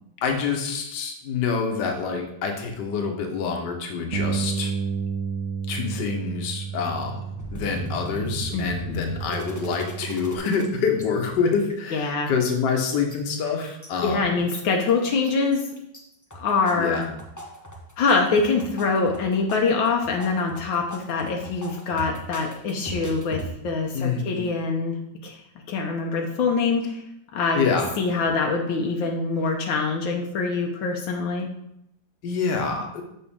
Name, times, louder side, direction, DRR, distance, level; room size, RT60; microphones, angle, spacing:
voice 1, 0.2-4.8 5.7-14.3 16.7-17.1 23.9-24.4 27.5-27.9 32.2-33.0, left 5 dB, 65° left, 3 dB, 1.6 m, -26 dB
Bass guitar, 4.1-10.4, right 6 dB, 60° right, 0.9 m, -32 dB
sound 1, 7.4-10.7 11.0-11.1 11.3-12.1 12.4-13.9 14.3-14.9 15.2-16.0 16.3-23.5, right 1 dB, 25° left, 0.4 m, -37 dB
voice 2, 8.5-9.0 11.9-12.3 14.0-15.7 16.4-17.0 18.0-25.0 25.2-25.4 25.7-27.0 27.3-27.6 28.0-31.5, left 4 dB, 80° left, 1 dB, 1.6 m, -24 dB
7.0 x 5.7 x 3.6 m, 0.80 s
omnidirectional pair, 2.1 m